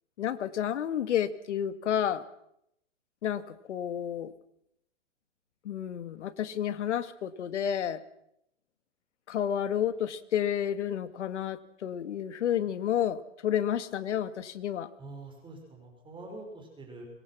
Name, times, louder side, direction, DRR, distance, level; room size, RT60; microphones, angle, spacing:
voice 1, 0.2-2.2 3.2-4.3 5.6-8.0 9.3-14.9, left 9 dB, 70° left, 12 dB, 2.1 m, -30 dB
voice 2, 15.0-17.1, right 2 dB, 15° right, 3 dB, 6.1 m, -45 dB
25.0 x 22.0 x 6.2 m, 0.76 s
hypercardioid pair, 135°, 37 cm